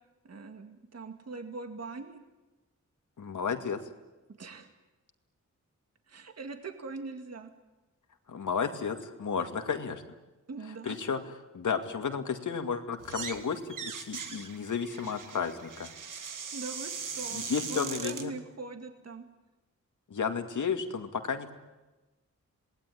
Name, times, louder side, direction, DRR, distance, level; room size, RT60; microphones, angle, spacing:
voice 1, 0.2-2.2 4.4-4.7 6.1-7.5 10.5-11.0 16.5-19.2, right 3 dB, 55° right, 6 dB, 2.1 m, -42 dB
voice 2, 3.2-3.8 8.3-10.0 10.8-11.2 11.5-15.9 17.3-18.3 20.1-21.6, left 6 dB, 75° left, 6 dB, 2.3 m, -32 dB
sound 1, 13.0-13.4 13.7-18.3, right 6 dB, 85° right, 2.0 m, -40 dB
27.5 x 19.5 x 10.0 m, 1.1 s
wide cardioid pair, 145°, 31 cm